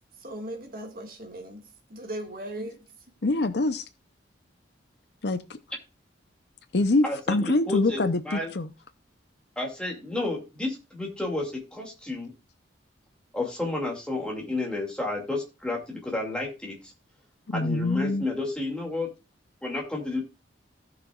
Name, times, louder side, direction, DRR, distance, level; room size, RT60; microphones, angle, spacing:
voice 1, 0.2-1.6 1.9-2.8, right 1 dB, 50° right, 1.9 m, -37 dB
voice 2, 3.2-3.8 5.2-5.6 6.7-8.7 17.5-18.3, left 2 dB, 60° left, 0.7 m, -25 dB
voice 3, 7.0-8.5 9.6-12.3 13.3-16.9 17.5-19.1 19.6-20.2, left 2 dB, 5° left, 2.3 m, -31 dB
16.5 x 6.2 x 2.4 m
head